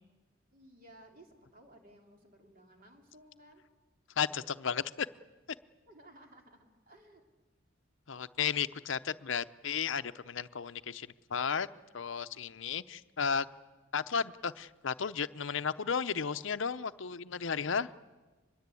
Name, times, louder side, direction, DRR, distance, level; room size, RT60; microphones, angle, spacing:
voice 1, 0.5-3.6 5.9-7.2, right 1 dB, 45° right, 2 dB, 3.1 m, -58 dB
voice 2, 4.2-5.1 8.1-11.7 11.9-13.5 13.9-17.9, left 6 dB, 65° left, 13 dB, 0.7 m, -34 dB
24.5 x 21.0 x 8.4 m, 1.3 s
head